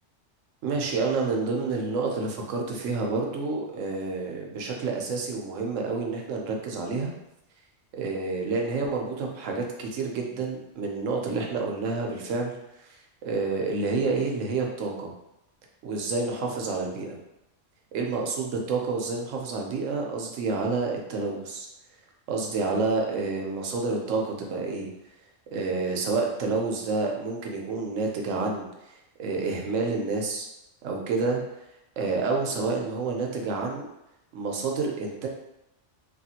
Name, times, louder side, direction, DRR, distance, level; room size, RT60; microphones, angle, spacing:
voice 1, 0.6-7.1 7.9-12.5 12.8-15.1 15.8-17.2 17.9-21.7 22.3-24.9 25.5-28.9 29.2-30.5 30.8-31.4 32.0-33.9 34.3-35.3, right 4 dB, 85° right, 1 dB, 1.0 m, -29 dB
3.5 x 2.3 x 2.8 m, 0.88 s
omnidirectional pair, 1.3 m